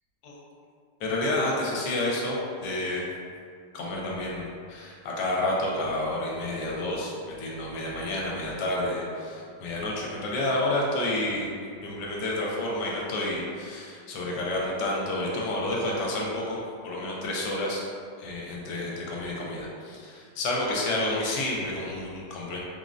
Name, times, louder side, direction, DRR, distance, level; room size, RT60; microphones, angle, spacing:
voice 1, 1.0-3.0 3.7-11.5 11.8-17.8 18.2-22.6, left 1 dB, 80° left, -3 dB, 1.2 m, -30 dB
3.6 x 2.0 x 2.5 m, 2.2 s
omnidirectional pair, 1.9 m